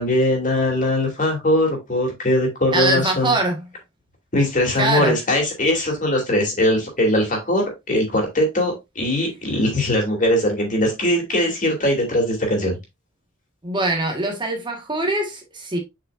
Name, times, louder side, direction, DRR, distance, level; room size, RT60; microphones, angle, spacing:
voice 1, 0.0-3.4 4.3-12.8, left 1 dB, 40° left, 2.7 m, -21 dB
voice 2, 2.7-3.6 4.8-5.1 13.6-15.8, right 2 dB, 25° right, 1.5 m, -22 dB
7.5 x 5.3 x 2.5 m
head